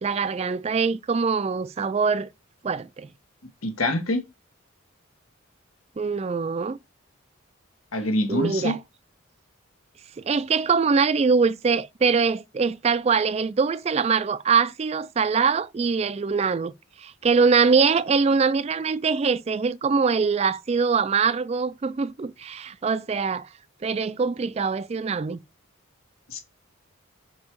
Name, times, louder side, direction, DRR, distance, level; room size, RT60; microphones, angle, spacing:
voice 1, 0.0-2.3 2.6-3.1 6.0-6.8 8.3-8.8 10.2-16.7 17.0-23.5 23.8-25.4, right 5 dB, 30° right, 0.3 m, -23 dB
voice 2, 3.6-4.2 7.9-8.8 26.3-26.4, left 1 dB, 90° left, 1.5 m, -25 dB
5.3 x 4.8 x 4.6 m
head